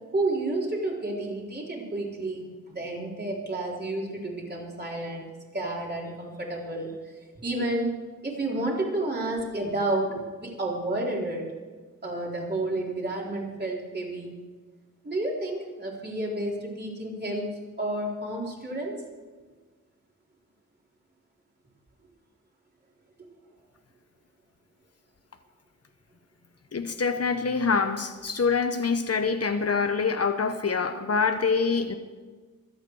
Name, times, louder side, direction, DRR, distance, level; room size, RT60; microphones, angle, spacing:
voice 1, 0.1-5.3 5.5-7.1 7.4-7.9 8.2-11.4 12.0-14.4 15.0-17.5 17.8-19.0, right 2 dB, 35° right, -3 dB, 4.0 m, -30 dB
voice 2, 26.7-31.9, left 5 dB, 50° left, 8 dB, 0.9 m, -25 dB
25.5 x 8.9 x 4.7 m, 1.4 s
wide cardioid pair, 125°, 31 cm